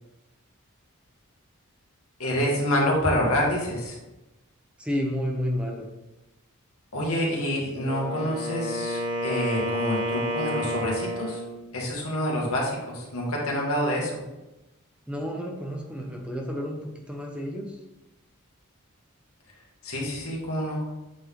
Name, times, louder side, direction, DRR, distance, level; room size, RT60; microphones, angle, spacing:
voice 1, 2.2-3.9 6.9-11.4 11.7-14.2 19.8-20.8, equal, 75° left, -3 dB, 2.1 m, -27 dB
voice 2, 4.8-5.9 15.1-16.8 17.1-17.8, equal, 5° right, 0 dB, 0.8 m, -30 dB
Wind instrument woodwind instrument, 7.7-11.6, equal, 25° right, 1.1 m, -30 dB
8.3 x 4.0 x 3.8 m, 0.99 s
head